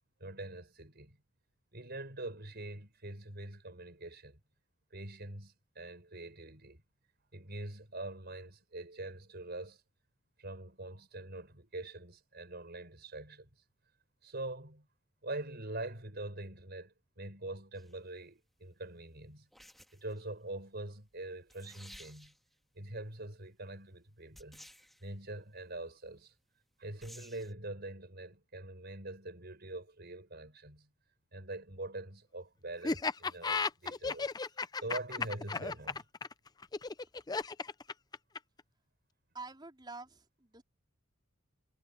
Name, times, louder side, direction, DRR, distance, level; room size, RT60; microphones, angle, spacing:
voice 1, 0.2-1.2 1.7-4.4 4.9-6.8 7.3-9.8 10.4-13.5 14.2-14.9 15.2-19.5 19.9-22.3 22.7-24.7 25.0-26.3 26.8-30.9 31.3-34.3 34.8-36.0, right 2 dB, 50° right, 5.7 m, -44 dB
sound 1, 17.7-18.0 19.5-20.2 21.2-21.3 21.5-22.5 24.3-25.1 27.0-27.5, equal, ahead, 2.5 m, -55 dB
Laughter, 32.8-38.6, left 4 dB, 20° left, 0.4 m, -34 dB
voice 2, 39.3-40.6, right 3 dB, 20° right, 4.2 m, -47 dB
head